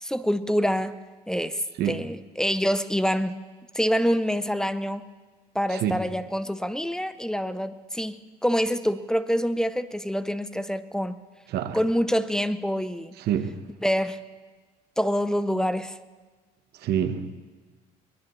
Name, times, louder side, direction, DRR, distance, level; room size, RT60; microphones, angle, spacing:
voice 1, 0.0-1.0 1.3-3.4 3.7-5.1 5.5-8.2 8.4-11.2 11.7-13.1 13.8-14.2 15.0-16.0, equal, 5° left, 13 dB, 0.6 m, -26 dB
voice 2, 13.2-13.6 16.8-17.3, right 9 dB, 75° right, 9 dB, 1.1 m, -27 dB
23.0 x 19.0 x 3.2 m, 1.4 s
cardioid pair, 110°, 17 cm